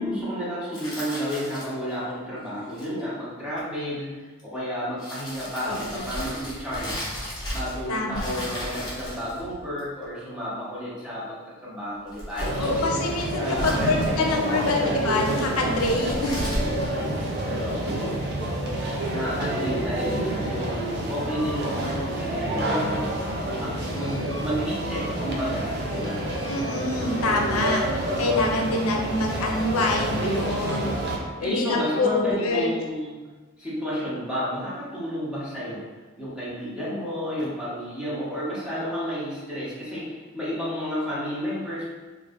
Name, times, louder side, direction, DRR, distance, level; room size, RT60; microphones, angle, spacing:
voice 1, 0.0-7.1 7.5-12.8 13.4-14.9 16.6-16.7 17.4-18.2 19.1-26.2 27.3-27.8 30.7-33.2 33.6-35.8 36.2-41.8, equal, 5° right, -10 dB, 1.0 m, -31 dB
sound 1, 0.7-1.9 2.6-3.0 4.4-4.5 5.0-7.9 8.1-10.0 12.0-12.9 13.3-14.3 15.7-17.7, equal, 20° left, 1.0 m, -35 dB
voice 2, 5.7-6.1 7.9-8.5 12.6-16.4 26.5-27.8 28.2-31.0 31.4-32.7, left 2 dB, 90° left, 1 dB, 0.5 m, -26 dB
sound 2, 12.4-31.2, right 1 dB, 50° right, 0.5 m, -28 dB
3.1 x 2.5 x 3.6 m, 1.3 s
head